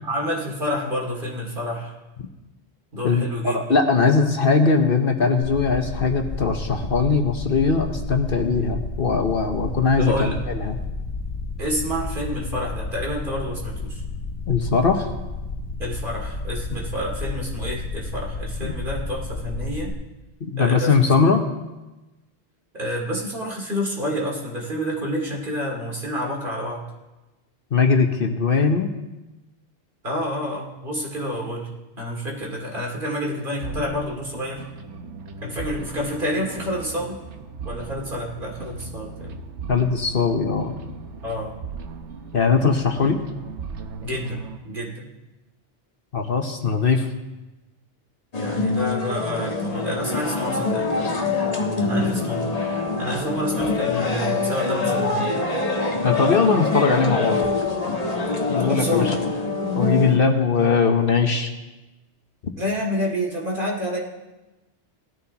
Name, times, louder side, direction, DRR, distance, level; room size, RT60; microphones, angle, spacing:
voice 1, 0.0-1.9 2.9-3.8 10.0-10.4 11.6-14.0 15.8-19.9 20.6-21.1 22.7-26.8 30.0-31.7 32.0-34.6 35.4-37.2 37.6-39.3 41.2-41.5 44.0-45.0 48.4-50.9 51.8-52.5 53.0-55.4 58.6-59.1 62.6-64.0, equal, 50° right, -2 dB, 2.7 m, -28 dB
voice 2, 3.0-10.8 14.5-15.1 18.6-18.7 20.4-21.4 27.7-28.9 39.7-40.7 42.3-43.2 46.1-47.1 56.0-57.4 58.5-59.1 59.7-61.5, left 5 dB, 55° left, 4 dB, 1.1 m, -20 dB
sound 1, 5.4-19.9, left 3 dB, 90° left, 1.7 m, -31 dB
sound 2, 33.6-44.6, right 5 dB, 85° right, 1.2 m, -37 dB
sound 3, 48.3-60.2, left 3 dB, 35° left, 1.3 m, -24 dB
18.5 x 13.5 x 2.9 m, 1.1 s
omnidirectional pair, 1.1 m